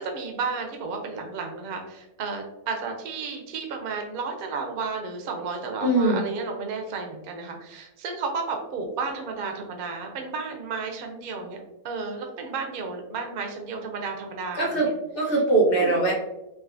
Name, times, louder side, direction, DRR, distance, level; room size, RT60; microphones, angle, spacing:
voice 1, 0.0-14.9 15.3-15.4 15.8-16.0, right 4 dB, 75° right, 3 dB, 0.4 m, -33 dB
voice 2, 5.8-6.2 14.5-14.9 15.1-16.1, right 2 dB, 45° left, -3 dB, 0.8 m, -21 dB
3.6 x 2.6 x 2.5 m, 0.92 s
omnidirectional pair, 1.7 m